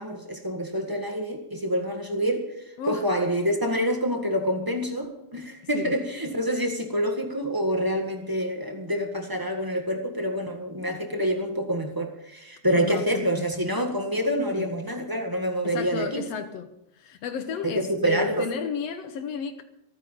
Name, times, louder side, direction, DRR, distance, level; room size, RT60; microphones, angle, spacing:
voice 1, 0.0-2.4 2.9-16.2 17.6-18.4, equal, 15° right, 0.8 m, -27 dB
voice 2, 12.8-13.7 14.5-14.8 15.6-16.7 17.0-19.6, left 7 dB, 65° left, 1.9 m, -33 dB
27.5 x 9.5 x 3.9 m
omnidirectional pair, 3.4 m